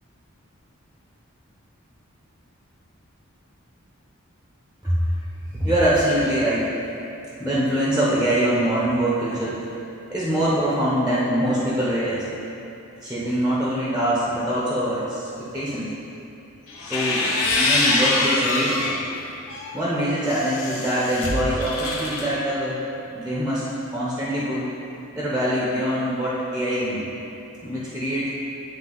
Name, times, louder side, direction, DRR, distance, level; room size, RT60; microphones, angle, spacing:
voice 1, 5.5-6.7 7.4-9.6 10.1-12.2 13.0-15.9 16.9-19.0 19.7-22.8 23.1-23.7 23.9-24.7 25.1-27.0 27.6-28.3, right 1 dB, 5° right, -8 dB, 0.8 m, -23 dB
sound 1, 16.7-19.0 19.5-22.3, left 2 dB, 80° left, 0.9 m, -24 dB
9.5 x 3.4 x 3.9 m, 2.8 s
head